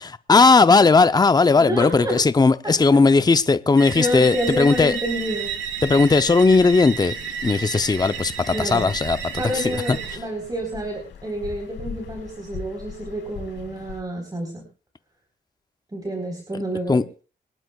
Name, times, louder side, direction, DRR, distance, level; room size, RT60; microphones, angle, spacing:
voice 1, 0.0-5.0 5.8-7.1 7.4-10.0 16.9-17.0, left 4 dB, 20° left, 0.7 m, -17 dB
voice 2, 1.6-2.2 2.6-2.7 3.9-5.5 8.5-8.9 9.4-14.6 15.9-17.0, equal, 20° right, 4.3 m, -29 dB
sound 1, 3.8-10.2, right 6 dB, 90° right, 1.7 m, -32 dB
sound 2, 4.0-14.0, left 7 dB, 80° left, 4.0 m, -43 dB
26.0 x 11.0 x 2.4 m
cardioid pair, 70°, 19 cm